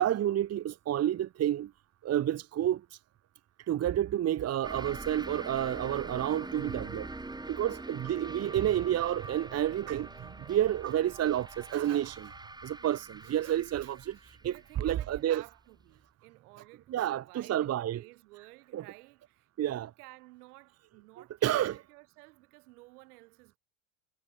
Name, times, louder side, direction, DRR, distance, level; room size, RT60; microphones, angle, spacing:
voice 1, 0.0-1.7 2.0-2.8 3.7-7.1 7.5-12.3 12.6-14.2 14.4-15.4 16.9-18.0 18.7-18.8 19.6-19.9 21.4-21.8, right 11 dB, 35° right, 1.1 m, -30 dB
sound 1, 4.6-15.8, right 2 dB, 10° right, 4.2 m, -44 dB
voice 2, 14.4-23.6, right 22 dB, 85° right, 5.8 m, -55 dB
supercardioid pair, 110°, 44 cm